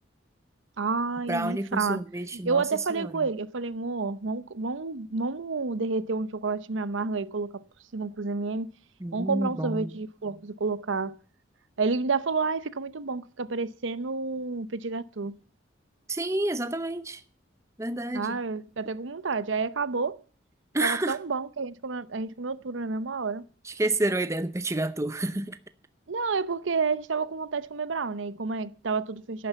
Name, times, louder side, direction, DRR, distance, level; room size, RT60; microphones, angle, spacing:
voice 1, 0.8-2.0 2.4-7.6 7.9-8.7 9.1-11.1 11.8-15.3 18.1-20.2 20.8-23.4 26.1-29.5, right 4 dB, 90° right, 0.7 m, -30 dB
voice 2, 1.3-2.6 3.0-3.3 9.0-9.9 16.1-17.2 17.8-18.4 20.7-21.2 23.6-25.6, right 2 dB, 15° right, 0.7 m, -29 dB
11.5 x 9.5 x 8.0 m
head